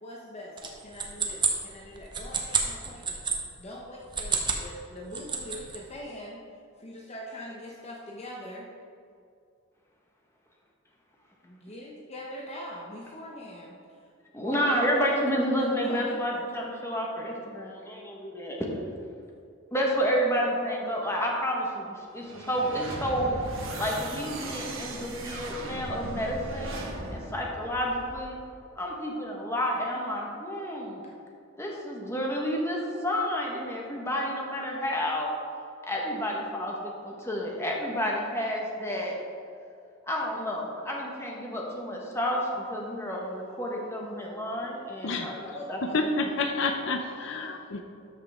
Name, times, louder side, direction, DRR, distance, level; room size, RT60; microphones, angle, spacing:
voice 1, 0.0-3.2 3.6-6.4 6.8-8.7 11.4-14.1 14.4-14.8 15.6-16.5 31.0-31.1 45.2-46.1 46.5-47.4, left 1 dB, 30° left, -2 dB, 0.8 m, -42 dB
sound 1, 0.6-3.4 4.0-4.7 5.0-5.8, right 6 dB, 25° right, 0.9 m, -29 dB
voice 2, 14.3-18.7 19.7-23.4 23.8-26.7 27.1-28.4 28.8-31.0 31.6-35.3 35.8-39.1 40.0-45.8, equal, 15° left, -2 dB, 1.3 m, -30 dB
sound 2, 22.2-28.4, right 1 dB, 75° right, 1.5 m, -38 dB
voice 3, 45.0-45.6 45.9-47.8, left 3 dB, 65° left, 5 dB, 0.6 m, -29 dB
13.0 x 5.8 x 3.6 m, 2.4 s
head